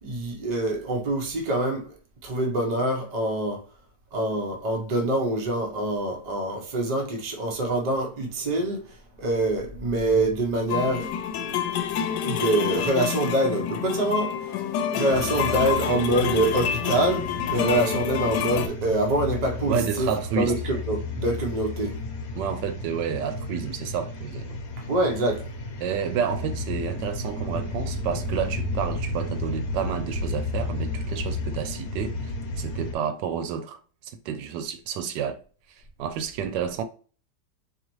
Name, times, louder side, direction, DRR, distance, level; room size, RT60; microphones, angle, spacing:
voice 1, 0.0-1.9 2.2-3.6 4.1-11.2 12.2-14.5 14.9-22.0 24.9-25.5, right 1 dB, 35° right, 0.7 m, -25 dB
sound 1, 10.7-18.7, left 8 dB, 80° left, 1.2 m, -28 dB
sound 2, 15.1-32.9, left 2 dB, 65° left, 1.2 m, -33 dB
voice 2, 19.6-20.5 22.3-24.6 25.8-35.4 35.7-36.8, right 7 dB, 90° right, 1.2 m, -30 dB
4.1 x 3.0 x 3.0 m
omnidirectional pair, 1.8 m